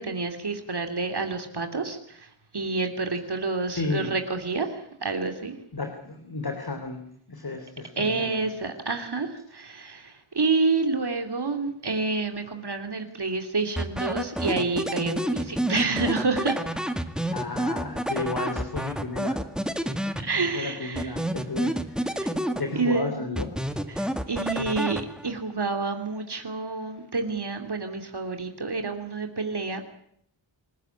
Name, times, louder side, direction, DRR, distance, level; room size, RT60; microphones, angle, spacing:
voice 1, 0.0-5.5 8.0-16.6 20.2-21.2 22.2-22.3 22.7-23.2 23.9-29.8, right 3 dB, 55° right, 6 dB, 3.0 m, -28 dB
voice 2, 3.7-4.1 5.7-7.0 7.3-8.5 17.3-19.4 20.3-22.2 22.6-23.5, left 3 dB, 50° left, 6 dB, 3.5 m, -33 dB
sound 1, 13.8-20.6 20.9-23.0 23.4-25.4, equal, ahead, 1.9 m, -29 dB
27.0 x 15.0 x 9.7 m, 0.70 s
wide cardioid pair, 85°, 48 cm